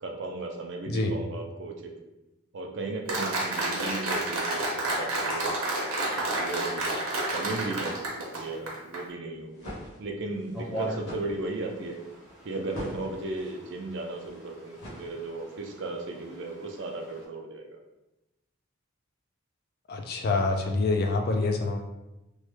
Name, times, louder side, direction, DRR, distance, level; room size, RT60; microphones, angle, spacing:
voice 1, 0.0-1.9 2.5-5.5 6.2-6.9 7.2-9.7 10.0-12.0 12.4-17.8, right 2 dB, 55° right, 2 dB, 0.4 m, -35 dB
Applause, 3.1-9.0, right 2 dB, 85° right, 0.8 m, -30 dB
sound 1, 9.3-15.6, equal, 80° left, 0.9 m, -45 dB
sound 2, 10.5-17.3, right 1 dB, 5° right, 0.6 m, -42 dB
voice 2, 19.9-21.8, left 3 dB, 45° left, 4 dB, 0.3 m, -26 dB
3.1 x 2.2 x 3.1 m, 0.97 s
head